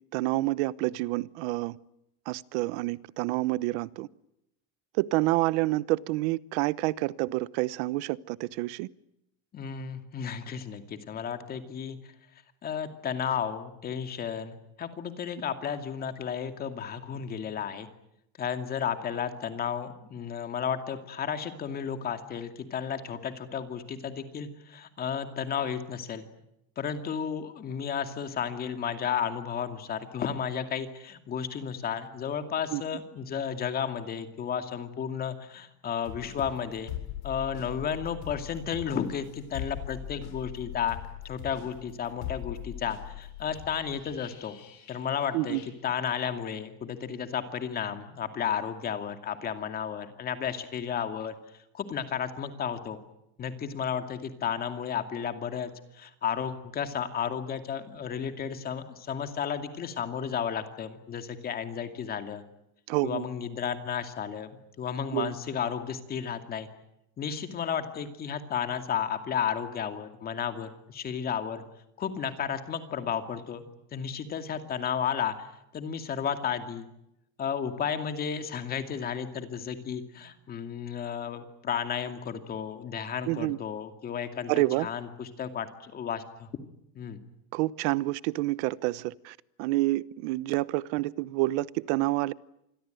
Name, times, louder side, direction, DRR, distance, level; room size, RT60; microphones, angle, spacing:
voice 1, 0.1-1.7 2.3-4.1 5.0-8.9 32.7-32.8 45.3-45.6 62.9-63.3 65.1-65.3 83.3-83.6 84.5-84.9 87.5-92.3, right 19 dB, 75° right, 1.0 m, -28 dB
voice 2, 9.5-12.0 12.6-17.9 18.4-26.2 26.8-36.9 37.2-41.0 41.2-44.6 44.9-51.3 51.7-53.0 53.4-62.4 63.0-66.7 67.2-71.6 72.0-73.6 73.9-75.3 75.7-76.9 77.4-86.5 86.9-87.2, left 7 dB, 25° left, 2.4 m, -33 dB
sound 1, 36.1-45.3 45.5-45.7, left 11 dB, 85° left, 7.7 m, -41 dB
27.0 x 21.5 x 9.2 m
cardioid pair, 165°, 34 cm